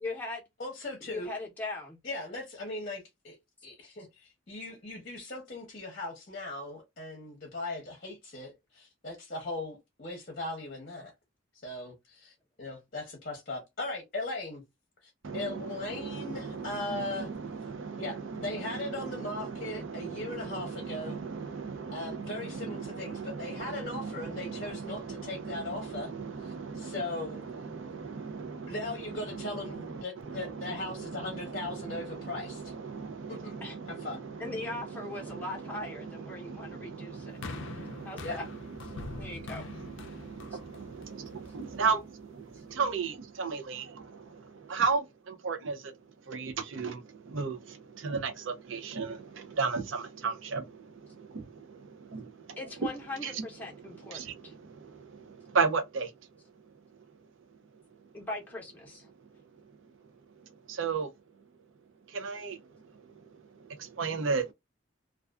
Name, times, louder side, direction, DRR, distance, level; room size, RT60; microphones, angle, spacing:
voice 1, 0.0-0.4 1.0-2.0 3.8-3.9 33.6-33.8 34.4-37.4 38.0-38.4 39.2-39.7 52.6-54.5 58.1-59.1, left 2 dB, 10° left, 0.7 m, -39 dB
voice 2, 0.6-1.3 2.0-3.4 3.6-11.1 11.6-11.9 12.6-14.6 15.0-17.3 18.0-21.2 21.9-26.1 26.4-27.4 28.7-32.7 33.3-33.6 33.9-34.2 38.2-38.4, left 2 dB, 45° left, 0.7 m, -38 dB
voice 3, 15.2-28.8 29.3-45.9 46.3-52.6 53.2-53.4 53.8-56.1 60.7-61.1 62.1-62.8 63.2-63.3 63.5-64.5, right 5 dB, 70° right, 0.5 m, -36 dB
sound 1, 37.4-41.8 42.6-42.7, left 3 dB, 65° left, 0.4 m, -44 dB
2.3 x 2.3 x 2.3 m
head